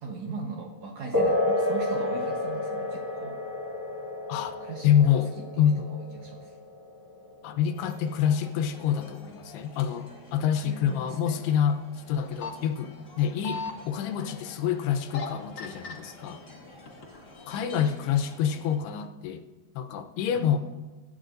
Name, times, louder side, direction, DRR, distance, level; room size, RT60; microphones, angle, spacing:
voice 1, 0.0-3.4 4.6-5.2 5.5-6.6 10.5-11.4 20.4-20.5, right 4 dB, 70° right, 1 dB, 1.8 m, -39 dB
sound 1, 1.1-9.1, left 1 dB, 20° right, 0.5 m, -31 dB
voice 2, 4.8-5.3 5.6-6.0 7.4-16.4 17.5-19.4 19.8-20.6, left 9 dB, 85° left, 7 dB, 2.8 m, -27 dB
sound 2, 7.7-18.8, left 2 dB, 15° left, 3.1 m, -50 dB
sound 3, 12.1-12.5 13.2-13.7 14.9-15.2 15.6-15.9 16.7-17.2 17.6-17.7, left 3 dB, 55° left, 1.3 m, -35 dB
25.0 x 12.0 x 2.6 m, 1.2 s
omnidirectional pair, 4.5 m